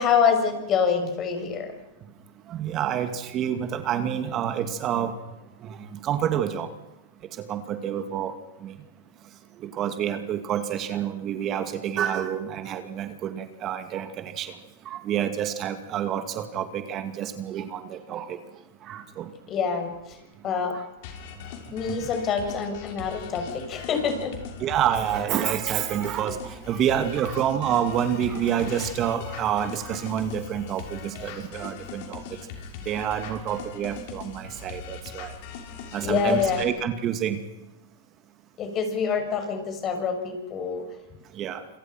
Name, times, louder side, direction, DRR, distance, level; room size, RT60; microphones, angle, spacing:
voice 1, 0.0-1.7 19.5-20.2 20.4-20.8 21.7-24.3 36.0-36.7 38.6-40.8, left 6 dB, 35° left, 5 dB, 6.9 m, -26 dB
voice 2, 2.5-5.2 5.6-6.7 7.4-8.3 8.6-8.7 9.6-14.6 14.9-18.4 18.8-19.3 20.7-20.8 24.6-32.2 32.9-35.3 35.9-37.4 41.3-41.6, right 9 dB, 35° right, 8 dB, 2.4 m, -28 dB
sound 1, 21.0-36.6, left 6 dB, 55° left, 6.4 m, -40 dB
28.0 x 26.0 x 6.0 m, 0.99 s
hypercardioid pair, 115°, 0 cm